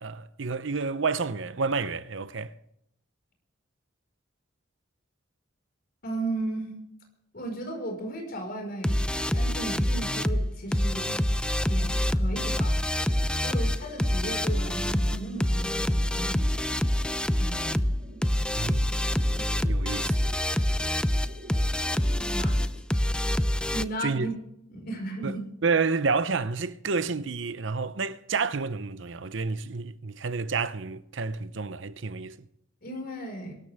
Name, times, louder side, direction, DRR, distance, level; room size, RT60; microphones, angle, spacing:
voice 1, 0.0-2.5 18.6-18.9 19.6-20.2 24.0-24.3 25.2-25.3 25.6-32.4, right 4 dB, 70° right, 0.7 m, -29 dB
voice 2, 6.0-6.7 7.3-11.1 11.6-12.8 13.4-16.5 17.4-17.8 22.3-22.6 23.7-24.3 24.7-25.4 32.8-33.6, right 1 dB, 50° left, 5.0 m, -35 dB
sound 1, 8.8-23.8, left 1 dB, 5° left, 0.5 m, -26 dB
sound 2, 12.8-22.8, equal, 55° right, 2.4 m, -49 dB
23.0 x 13.0 x 3.5 m
head